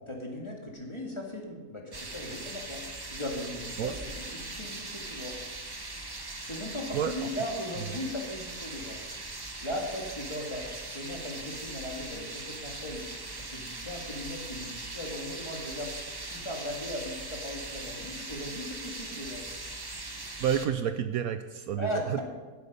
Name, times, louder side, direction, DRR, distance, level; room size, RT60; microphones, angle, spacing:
voice 1, 0.1-5.3 6.4-9.0 9.6-10.6 10.9-13.1 13.4-15.9 16.3-19.4 21.8-22.2, left 1 dB, 20° left, -1 dB, 2.1 m, -38 dB
sound 1, 1.9-20.7, right 2 dB, 20° right, 0.7 m, -40 dB
voice 2, 20.4-22.2, right 9 dB, 70° right, 9 dB, 1.0 m, -29 dB
15.0 x 8.2 x 5.4 m, 1.3 s
omnidirectional pair, 1.7 m